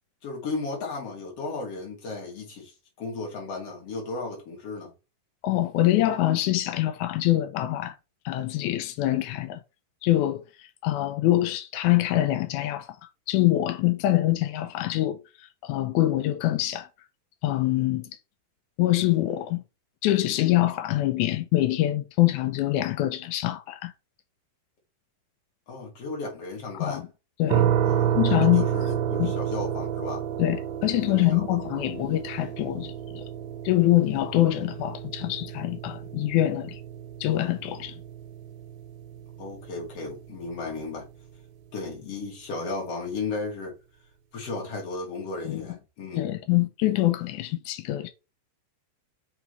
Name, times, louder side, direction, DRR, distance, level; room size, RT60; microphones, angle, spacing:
voice 1, 0.2-4.9 25.7-27.1 27.8-30.3 31.1-31.5 39.4-41.1 41.7-43.7 44.3-46.3, left 3 dB, 45° left, 3.1 m, -35 dB
voice 2, 5.4-7.9 8.2-9.6 10.0-12.9 13.3-16.9 17.4-18.1 18.8-19.6 20.0-23.9 26.7-27.0 27.4-27.6 28.1-28.7 29.2-29.3 30.4-33.2 33.6-36.8 37.2-38.0 45.4-45.6 46.1-48.1, left 15 dB, 85° left, 1.7 m, -24 dB
sound 1, 27.5-40.4, right 10 dB, 80° right, 2.5 m, -30 dB
6.1 x 4.8 x 3.2 m
omnidirectional pair, 4.2 m